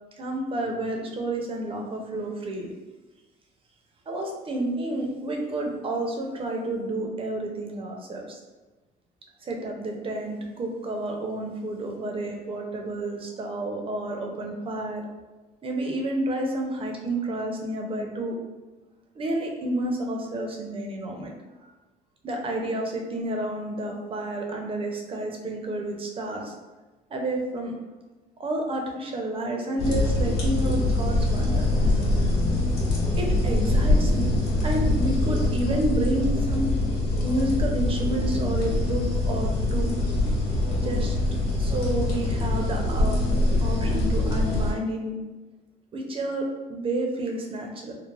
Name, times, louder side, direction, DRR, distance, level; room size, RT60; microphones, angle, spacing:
voice 1, 0.2-2.7 4.1-8.4 9.4-15.0 15.6-18.4 19.2-21.7 22.2-26.5 27.1-27.8 28.4-31.6 33.2-34.3 34.6-36.7 37.2-39.9 40.8-41.2 41.6-43.2 43.6-45.2 45.9-47.9, right 1 dB, 35° right, 1 dB, 0.6 m, -30 dB
sound 1, 29.8-44.7, left 2 dB, 70° left, 1.1 m, -24 dB
3.2 x 2.0 x 2.3 m, 1.2 s
cardioid pair, 110°, 17 cm